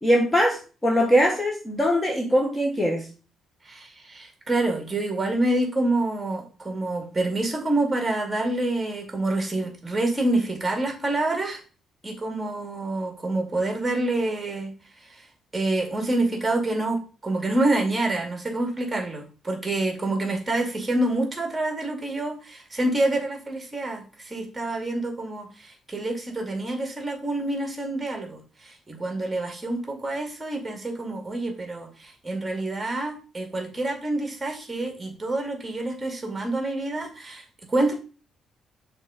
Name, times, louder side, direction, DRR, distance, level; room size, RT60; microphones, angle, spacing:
voice 1, 0.0-3.1, equal, 15° left, 1 dB, 1.4 m, -21 dB
voice 2, 3.6-11.6 12.0-14.7 15.0-15.3 15.5-37.9, right 2 dB, 20° right, 3 dB, 2.3 m, -27 dB
6.3 x 3.9 x 5.1 m, 0.36 s
cardioid pair, 90°, 0 cm